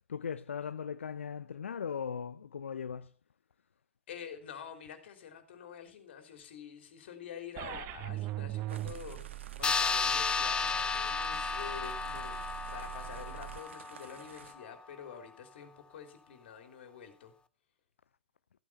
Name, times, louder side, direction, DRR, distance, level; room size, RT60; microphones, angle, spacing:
voice 1, 0.1-3.1, left 7 dB, 75° left, 0.5 m, -38 dB
voice 2, 4.1-17.3, left 8 dB, 60° left, 3.4 m, -47 dB
sound 1, 7.6-13.6, right 17 dB, 35° right, 0.6 m, -42 dB
sound 2, 8.7-14.5, right 7 dB, 70° right, 1.5 m, -53 dB
sound 3, 9.6-14.5, left 5 dB, 15° left, 0.8 m, -33 dB
15.0 x 8.8 x 5.6 m
figure-of-eight pair, 110°, 7 cm